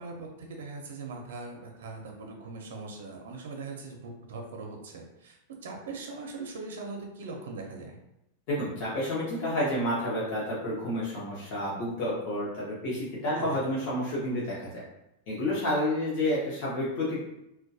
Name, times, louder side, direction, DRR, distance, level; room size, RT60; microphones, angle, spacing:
voice 1, 0.0-8.0 13.4-13.6, right 3 dB, 85° right, 2 dB, 0.5 m, -41 dB
voice 2, 8.5-14.8 15.3-17.2, left 1 dB, 45° left, -7 dB, 0.7 m, -30 dB
2.2 x 2.1 x 2.6 m, 0.86 s
supercardioid pair, 160°, 0 cm